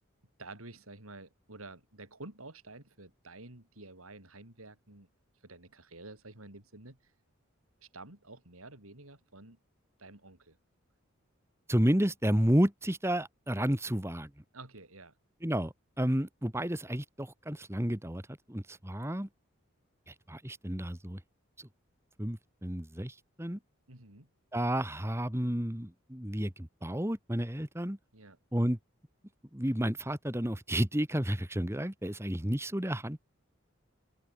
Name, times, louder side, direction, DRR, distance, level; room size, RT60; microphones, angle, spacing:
voice 1, 0.4-5.1 5.4-7.1 7.8-9.6 10.0-10.6 14.5-15.1 23.9-24.3 28.1-28.4, right 2 dB, 90° right, 5.1 m, -50 dB
voice 2, 11.7-14.3 15.4-19.3 20.1-21.2 21.6-21.7 22.2-23.6 24.5-28.0 28.5-28.8 29.5-33.2, equal, 10° right, 1.8 m, -31 dB
open air
head